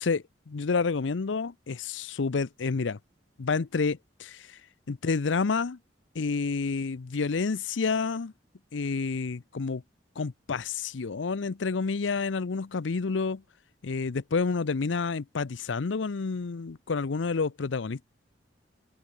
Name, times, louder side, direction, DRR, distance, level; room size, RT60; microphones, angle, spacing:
voice 1, 0.0-3.0 3.4-4.6 4.9-5.8 6.1-8.3 8.7-9.8 10.2-13.4 13.8-18.0, left 4 dB, 85° left, 0.6 m, -29 dB
head